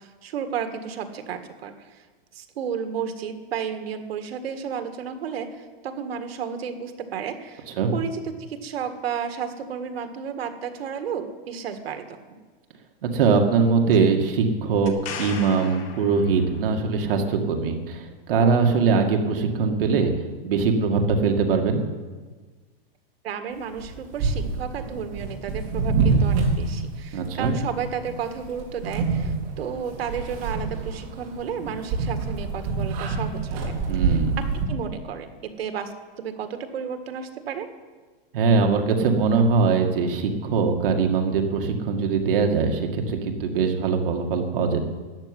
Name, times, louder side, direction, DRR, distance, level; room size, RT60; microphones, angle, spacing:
voice 1, 0.0-2.0 2.3-7.7 7.9-12.2 23.2-33.6 34.0-35.3 35.6-37.7, right 7 dB, 80° right, 7 dB, 1.8 m, -32 dB
voice 2, 13.1-14.9 15.2-18.0 18.3-20.1 20.4-21.8 27.1-27.5 33.9-34.4 38.3-44.9, right 5 dB, 65° right, 3 dB, 2.2 m, -22 dB
sound 1, 14.9-16.8 20.5-20.6, left 7 dB, 25° left, 1.4 m, -37 dB
sound 2, 23.8-34.7, right 4 dB, 40° right, 3.5 m, -26 dB
13.5 x 8.6 x 9.9 m, 1.4 s
supercardioid pair, 170°, 30 cm